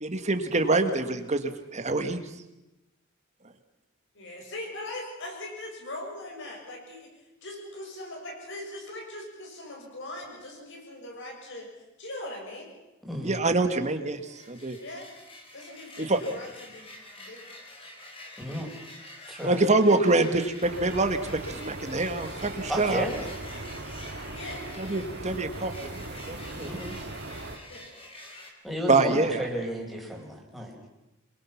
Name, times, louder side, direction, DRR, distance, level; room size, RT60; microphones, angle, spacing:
voice 1, 0.0-2.2 13.2-14.8 16.0-16.2 19.4-23.1 24.8-26.8 28.9-29.5, right 2 dB, 35° right, 8 dB, 1.9 m, -26 dB
voice 2, 4.2-7.1 7.4-11.7 12.0-12.7 14.8-15.1 15.5-16.9 17.2-17.4 24.3-24.6 27.7-27.9, left 1 dB, 60° left, 1 dB, 6.9 m, -40 dB
voice 3, 13.0-13.4 18.4-18.7 19.3-19.6 22.7-23.2 26.6-27.0 28.6-30.8, equal, ahead, 1 dB, 5.2 m, -33 dB
sound 1, 14.2-28.5, left 1 dB, 25° left, 4.2 m, -47 dB
sound 2, 20.6-27.6, right 2 dB, 55° right, 2.1 m, -39 dB
26.5 x 22.5 x 6.0 m, 0.98 s
head